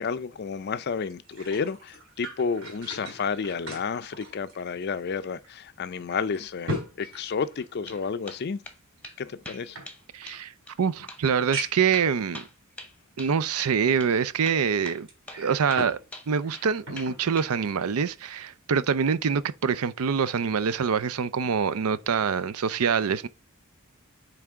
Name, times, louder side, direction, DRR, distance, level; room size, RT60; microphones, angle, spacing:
voice 1, 0.0-8.6 9.2-9.8, left 5 dB, 45° left, 0.4 m, -31 dB
sound 1, 1.1-5.1 5.4-5.5 6.1-8.1 9.0-10.4 11.0-11.1 11.5-12.0 12.7-12.8 15.1-16.0 16.4-17.2 17.7-17.9, equal, 55° right, 3.8 m, -38 dB
sound 2, 7.6-8.0 8.3-8.8 9.0-9.2 9.4-10.0 10.3-10.4 10.7-10.8 11.1-11.2 11.5-13.3 13.6-13.7 14.0-14.1 14.4-15.0 15.3-15.4 15.7-16.7 17.0-17.5, left 2 dB, 5° left, 1.0 m, -42 dB
voice 2, 10.1-10.5 10.8-12.5 13.2-15.1 15.4-16.0 16.3-23.3, right 6 dB, 75° right, 0.5 m, -25 dB
8.5 x 3.4 x 3.5 m
head